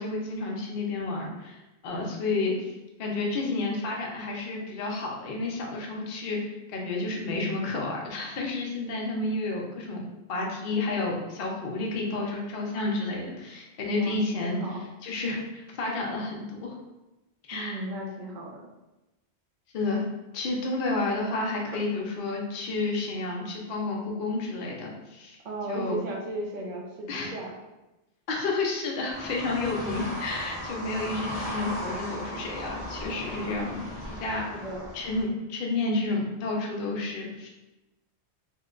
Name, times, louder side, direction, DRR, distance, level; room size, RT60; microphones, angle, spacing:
voice 1, 0.0-2.7 3.0-6.4 6.7-14.7 15.0-16.7 17.5-17.8 19.7-20.0 20.3-25.4 25.7-26.0 27.1-27.3 28.3-34.4 34.9-37.5, left 3 dB, 60° left, -1 dB, 0.7 m, -30 dB
voice 2, 14.0-14.8 17.5-18.7 25.4-27.5 34.5-34.9, right 1 dB, 50° right, -2 dB, 0.7 m, -35 dB
sound 1, 29.1-35.2, equal, 20° right, 0.9 m, -37 dB
2.8 x 2.1 x 3.7 m, 1.0 s
omnidirectional pair, 1.1 m